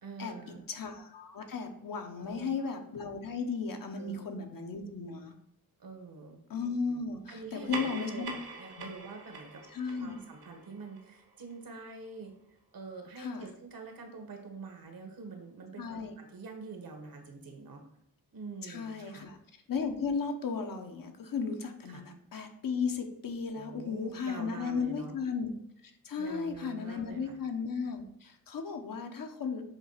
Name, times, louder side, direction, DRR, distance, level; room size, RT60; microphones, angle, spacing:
voice 1, 0.0-0.7 2.1-2.7 4.0-4.5 5.8-6.4 7.3-9.6 9.9-12.3 12.7-17.8 18.3-19.3 21.8-22.0 23.5-25.2 26.2-27.4, right 4 dB, 65° right, 3 dB, 1.6 m, -45 dB
voice 2, 0.7-5.3 6.5-8.3 8.8-8.9 9.7-10.2 13.2-13.5 15.8-16.1 18.6-19.4 19.7-25.5 26.0-29.6, left 5 dB, 60° left, 5 dB, 1.1 m, -35 dB
sound 1, 7.5-12.3, right 3 dB, 85° right, 1.5 m, -44 dB
7.1 x 3.5 x 5.7 m, 0.75 s
wide cardioid pair, 180°, 37 cm